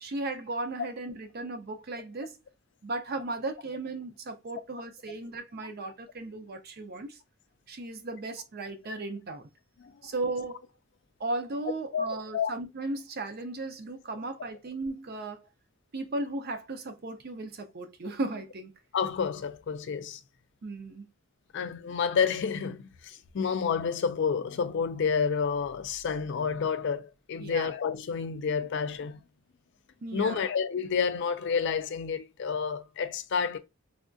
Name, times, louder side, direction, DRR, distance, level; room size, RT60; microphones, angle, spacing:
voice 1, 0.0-2.4 2.8-7.2 7.7-9.5 10.0-10.6 11.2-15.4 15.9-18.7 20.6-21.1 27.4-27.7 30.0-30.4, right 2 dB, 45° right, 0.5 m, -36 dB
voice 2, 18.9-20.2 21.5-29.2 30.1-33.6, left 6 dB, 55° left, 0.4 m, -29 dB
3.4 x 2.3 x 2.5 m
head